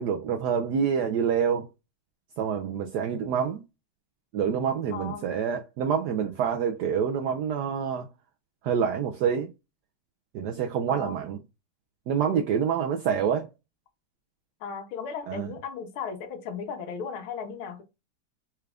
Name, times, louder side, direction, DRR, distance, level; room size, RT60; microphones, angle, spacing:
voice 1, 0.0-1.7 2.4-3.6 4.3-8.1 8.6-9.5 10.3-11.4 12.1-13.5 15.3-15.5, right 7 dB, 80° right, 0.9 m, -27 dB
voice 2, 4.9-5.3 10.9-11.2 14.6-17.8, left 6 dB, 85° left, 1.7 m, -36 dB
4.4 x 2.4 x 3.3 m
omnidirectional pair, 2.2 m